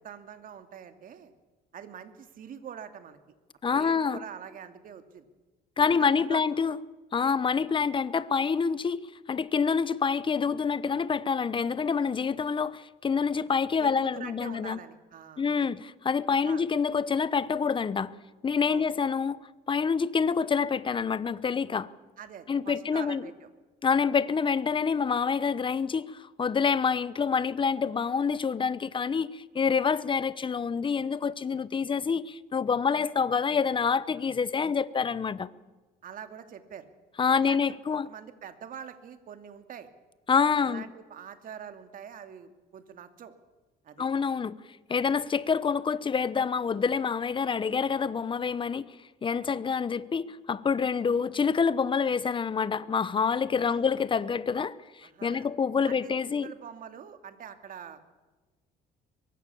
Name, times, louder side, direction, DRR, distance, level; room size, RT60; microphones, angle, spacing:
voice 1, 0.0-1.3 1.7-3.2 3.7-5.3 5.8-6.4 7.7-7.8 13.8-15.5 16.3-16.6 18.7-18.9 22.2-23.5 36.0-36.9 37.3-37.6 37.9-39.9 40.6-43.3 43.8-44.1 44.9-45.1 53.6-53.8 55.0-55.5 55.9-58.0, right 8 dB, 55° right, 2.6 m, -44 dB
voice 2, 3.6-4.2 5.8-6.8 7.1-14.8 15.4-18.1 18.4-19.4 19.7-21.9 22.5-23.2 23.8-35.5 37.2-38.1 40.3-40.8 44.0-44.6 44.9-48.9 49.2-56.5, left 6 dB, 30° left, 1.0 m, -27 dB
23.5 x 22.5 x 7.1 m
cardioid pair, 110°, 17 cm